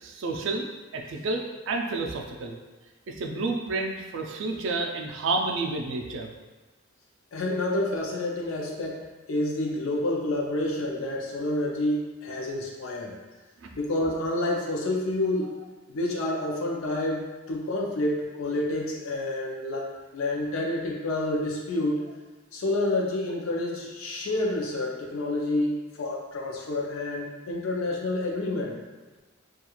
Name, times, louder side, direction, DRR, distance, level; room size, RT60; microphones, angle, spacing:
voice 1, 0.0-0.7 0.9-2.6 3.1-6.3 13.6-13.7, right 3 dB, 65° right, 2 dB, 0.3 m, -30 dB
voice 2, 7.3-13.2 13.8-15.6 15.9-19.9 20.1-22.1 22.5-28.8, left 1 dB, 75° left, -1 dB, 0.5 m, -29 dB
2.3 x 2.3 x 2.9 m, 1.3 s
head